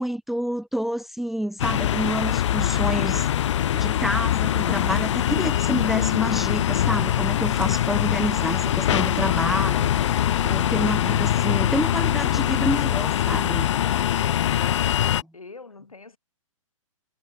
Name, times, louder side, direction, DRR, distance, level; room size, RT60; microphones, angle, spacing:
voice 1, 0.0-13.7, equal, ahead, 0.5 m, -29 dB
sound 1, 1.6-15.2, left 11 dB, 60° left, 0.4 m, -23 dB
sound 2, 2.6-2.9 3.3-3.6 3.9-5.9 6.2-6.6 7.0-7.2 7.7-7.9 8.3-8.6 9.0-9.3 9.8-9.9 10.4-10.6 11.0-11.3 11.7-11.8, right 30 dB, 35° right, 5.6 m, -53 dB
sound 3, 8.4-14.3, left 11 dB, 20° left, 3.2 m, -44 dB
voice 2, 13.7-16.2, left 3 dB, 90° left, 6.6 m, -44 dB
hypercardioid pair, 125°, 17 cm